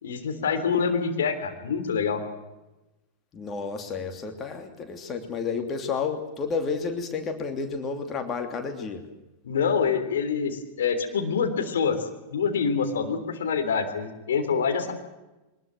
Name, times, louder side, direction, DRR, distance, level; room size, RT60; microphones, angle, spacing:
voice 1, 0.0-2.2 9.4-12.0 12.3-14.9, left 6 dB, 65° left, 5 dB, 3.4 m, -26 dB
voice 2, 3.3-9.1, left 5 dB, 25° left, 5 dB, 2.9 m, -31 dB
23.0 x 20.5 x 7.7 m, 1.0 s
figure-of-eight pair, 90°, 0 cm